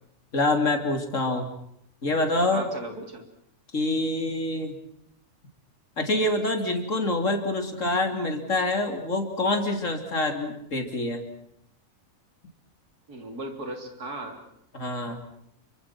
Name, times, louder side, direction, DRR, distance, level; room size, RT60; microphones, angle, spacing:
voice 1, 0.3-1.5 2.0-2.7 3.7-4.8 6.0-11.2 14.7-15.2, left 2 dB, 55° left, 5 dB, 3.6 m, -26 dB
voice 2, 2.5-3.2 13.1-14.4, right 2 dB, 90° right, 4 dB, 4.0 m, -37 dB
29.0 x 24.5 x 6.1 m, 0.75 s
omnidirectional pair, 1.6 m